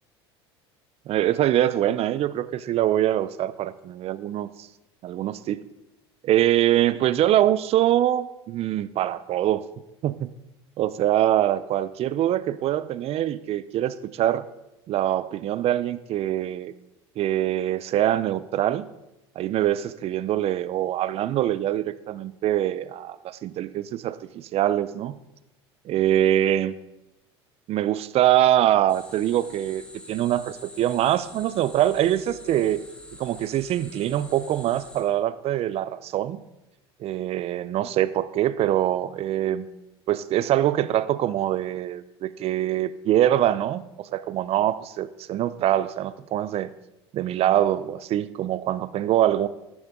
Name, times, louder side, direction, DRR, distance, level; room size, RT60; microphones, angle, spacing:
voice 1, 1.1-4.7 5.0-5.6 6.2-9.6 10.0-10.3 10.8-14.4 14.9-16.7 17.2-18.9 19.4-25.2 25.8-26.7 27.7-29.8 30.1-32.8 33.2-36.4 37.0-39.7 40.1-46.7 47.1-49.5, right 12 dB, 45° right, 17 dB, 0.6 m, -24 dB
sound 1, 28.9-35.0, left 1 dB, 10° left, 1.8 m, -46 dB
11.5 x 9.3 x 3.8 m, 0.94 s
hypercardioid pair, 85°, 14 cm